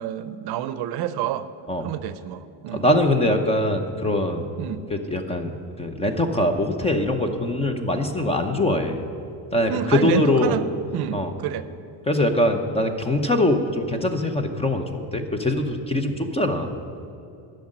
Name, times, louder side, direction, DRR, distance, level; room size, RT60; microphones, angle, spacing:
voice 1, 0.0-1.5 1.8-2.9 4.6-4.8 9.7-11.7, right 10 dB, 60° right, 13 dB, 0.7 m, -28 dB
voice 2, 2.7-4.5 4.9-5.5 5.8-9.0 9.5-10.6 11.1-11.3 12.1-16.7, left 1 dB, 15° left, 7 dB, 0.8 m, -22 dB
13.0 x 6.5 x 9.9 m, 2.6 s
cardioid pair, 150°, 42 cm